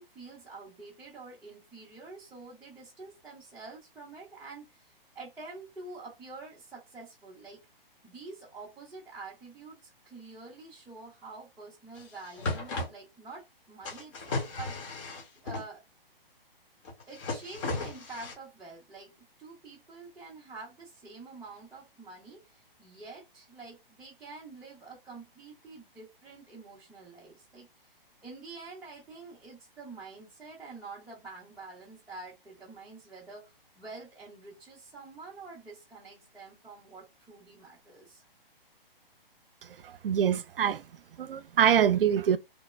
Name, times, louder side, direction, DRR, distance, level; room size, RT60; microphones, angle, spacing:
voice 1, 0.0-7.6 8.0-15.0 15.4-15.8 17.1-27.9 28.2-38.2, right 3 dB, 5° right, 0.5 m, -47 dB
sound 1, 12.0-12.1 12.3-12.9 13.8-15.6 16.8-18.3, left 2 dB, 35° left, 1.2 m, -35 dB
voice 2, 39.8-40.8 41.2-42.4, right 9 dB, 70° right, 0.5 m, -25 dB
3.1 x 2.1 x 3.1 m
figure-of-eight pair, 135°, 29 cm